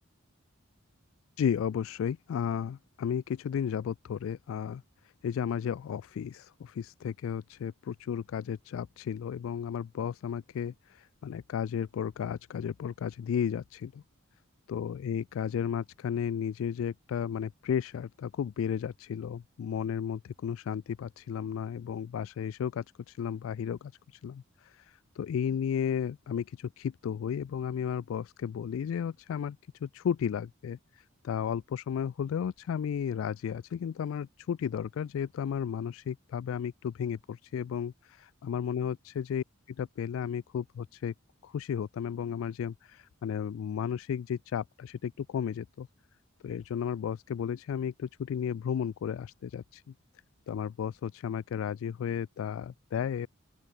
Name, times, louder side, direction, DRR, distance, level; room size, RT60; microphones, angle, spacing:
voice 1, 1.4-4.8 5.2-14.0 14.7-38.2 38.4-41.1 41.4-45.9 46.4-49.8 50.5-53.3, left 8 dB, 75° left, 0.3 m, -34 dB
open air
head